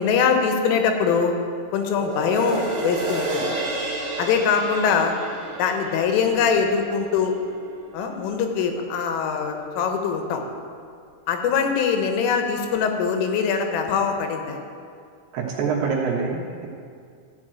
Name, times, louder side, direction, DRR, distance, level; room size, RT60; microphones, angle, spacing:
voice 1, 0.0-1.3 1.7-3.5 4.2-5.1 5.6-7.3 7.9-10.4 11.3-14.6, left 6 dB, 90° left, 4 dB, 3.7 m, -22 dB
sound 1, 1.8-8.4 8.9-9.0, right 2 dB, 30° right, 2.5 m, -31 dB
voice 2, 15.3-16.7, right 5 dB, 65° right, -2 dB, 2.9 m, -25 dB
14.5 x 5.8 x 9.0 m, 2.2 s
omnidirectional pair, 5.6 m